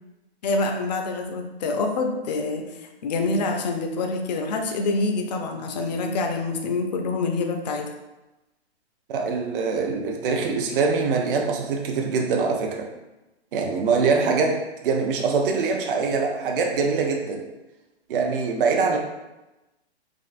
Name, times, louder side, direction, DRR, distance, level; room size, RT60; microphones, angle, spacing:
voice 1, 0.4-7.9, left 3 dB, 40° left, 4 dB, 0.4 m, -26 dB
voice 2, 9.1-12.9 13.5-17.4 18.1-19.0, right 4 dB, 55° right, 2 dB, 0.5 m, -23 dB
3.5 x 2.4 x 2.5 m, 1.0 s
hypercardioid pair, 145°, 33 cm